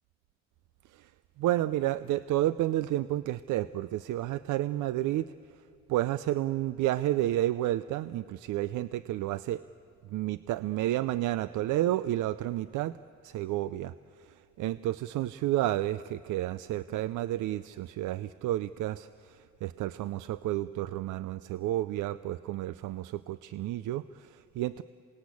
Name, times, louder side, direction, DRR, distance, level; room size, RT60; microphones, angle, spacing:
voice 1, 1.4-5.3 5.9-9.6 10.1-13.0 13.2-13.9 14.2-14.3 14.6-24.8, right 14 dB, 80° right, 15 dB, 0.5 m, -31 dB
27.5 x 19.5 x 8.4 m, 2.4 s
cardioid pair, 90°, 30 cm